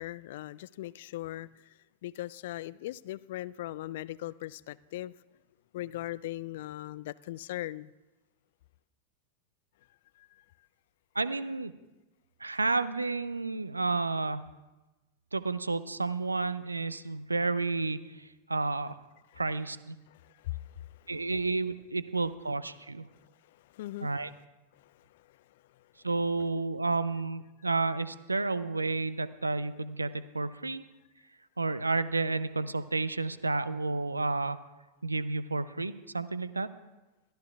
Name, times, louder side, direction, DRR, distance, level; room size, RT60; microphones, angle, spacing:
voice 1, 0.0-1.7 2.0-5.2 5.7-7.9 10.2-10.4 19.3-19.4 20.1-21.3 23.1-24.1 24.7-25.4 25.7-25.8, left 15 dB, 55° left, 20 dB, 0.3 m, -40 dB
voice 2, 11.2-11.7 12.4-14.4 15.3-19.0 19.4-20.0 21.1-23.1 24.0-24.3 26.0-30.8 31.6-34.6 35.0-36.7, right 3 dB, 80° right, 15 dB, 0.5 m, -31 dB
22.0 x 14.0 x 2.4 m, 1.1 s
figure-of-eight pair, 90°, 0 cm